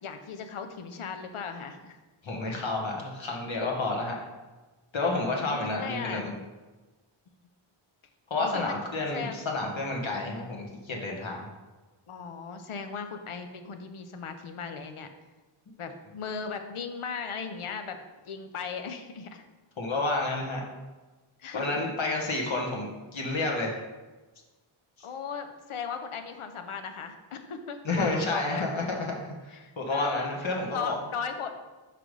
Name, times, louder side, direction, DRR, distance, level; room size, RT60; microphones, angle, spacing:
voice 1, 0.0-2.0 5.4-6.3 8.4-8.8 9.1-9.4 12.1-15.1 15.8-19.4 21.4-21.9 25.0-28.6 29.5-30.3 30.7-31.5, left 6 dB, 80° left, 7 dB, 0.7 m, -37 dB
voice 2, 2.2-4.2 4.9-6.3 8.3-11.5 19.8-20.6 21.5-23.8 27.8-31.0, left 2 dB, 65° left, 0 dB, 1.3 m, -30 dB
5.8 x 5.1 x 3.2 m, 1.2 s
wide cardioid pair, 70°, 49 cm